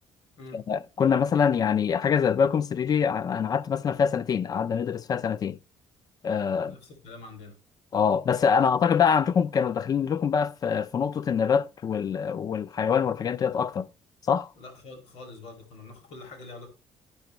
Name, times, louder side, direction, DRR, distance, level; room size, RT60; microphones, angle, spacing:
voice 1, 0.5-5.6 6.2-6.8 7.9-13.9 14.3-14.5, left 7 dB, 35° left, 0.4 m, -24 dB
voice 2, 6.5-7.6 14.6-16.7, left 3 dB, 80° left, 2.1 m, -45 dB
12.0 x 5.2 x 3.0 m
cardioid pair, 115°, 11 cm